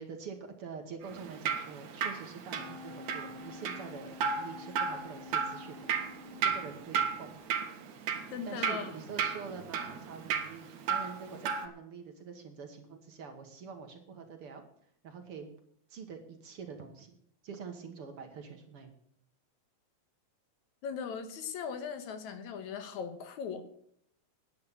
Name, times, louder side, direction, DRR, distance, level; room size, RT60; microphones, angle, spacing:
voice 1, 0.0-7.4 8.5-14.6 15.0-15.5 15.9-17.2 17.4-18.9, right 5 dB, 55° right, 5 dB, 2.0 m, -46 dB
Drip, 1.0-11.6, right 7 dB, 80° right, 2.8 m, -35 dB
sound 1, 2.5-7.1 7.5-7.6, left 5 dB, 55° left, 1.2 m, -49 dB
voice 2, 8.3-9.0 20.8-23.6, left 6 dB, 75° left, 9 dB, 2.6 m, -39 dB
10.5 x 8.5 x 8.5 m, 0.66 s
omnidirectional pair, 3.4 m